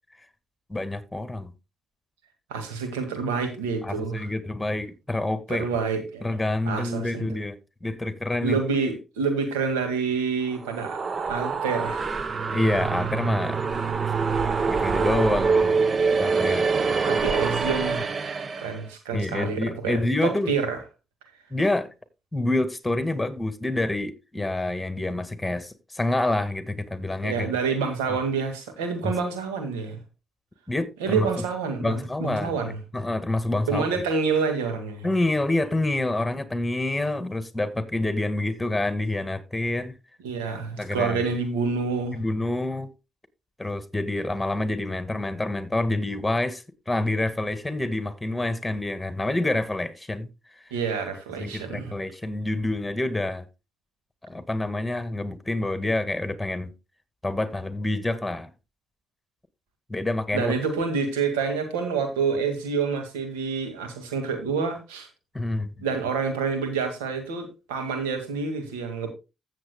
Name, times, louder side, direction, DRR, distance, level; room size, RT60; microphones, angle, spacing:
voice 1, 0.7-1.5 3.8-5.7 6.2-8.6 12.5-13.6 14.6-15.8 16.1-16.7 19.1-20.5 21.5-21.9 22.3-27.5 29.0-29.1 30.7-31.3 31.8-32.6 32.9-33.8 35.0-40.0 40.8-41.2 42.1-42.9 43.6-50.3 51.4-53.5 54.2-56.7 57.2-58.5 59.9-60.5 65.3-65.7, left 2 dB, 10° left, 2.0 m, -27 dB
voice 2, 2.5-4.2 5.5-6.3 6.7-7.3 8.4-12.0 17.1-18.1 18.5-20.8 27.2-30.0 31.0-32.8 33.7-35.1 40.2-42.2 50.7-51.9 60.3-65.1 65.8-69.1, right 5 dB, 90° right, 1.9 m, -28 dB
sound 1, 10.5-18.8, right 5 dB, 45° right, 1.0 m, -25 dB
15.5 x 7.5 x 2.2 m
hypercardioid pair, 50°, 0 cm